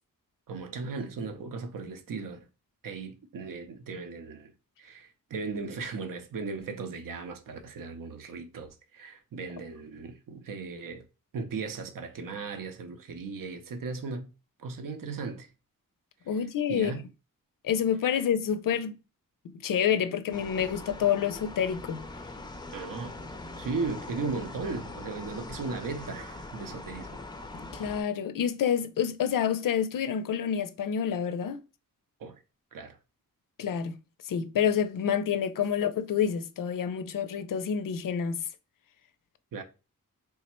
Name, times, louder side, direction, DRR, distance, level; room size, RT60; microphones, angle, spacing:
voice 1, 0.5-2.5 2.8-4.5 4.8-11.0 11.3-14.3 14.6-15.5 16.3-16.4 16.7-17.0 22.7-23.2 23.5-27.2 32.2-32.4 32.7-33.0 39.5-39.6, right 4 dB, 70° right, 0.7 m, -37 dB
voice 2, 16.3-16.9 17.6-19.0 19.4-22.1 27.7-31.6 33.6-34.0 34.3-38.4, left 8 dB, 75° left, 0.5 m, -28 dB
sound 1, 20.3-28.0, left 2 dB, 15° left, 0.4 m, -42 dB
3.5 x 2.1 x 4.2 m
wide cardioid pair, 105°, 34 cm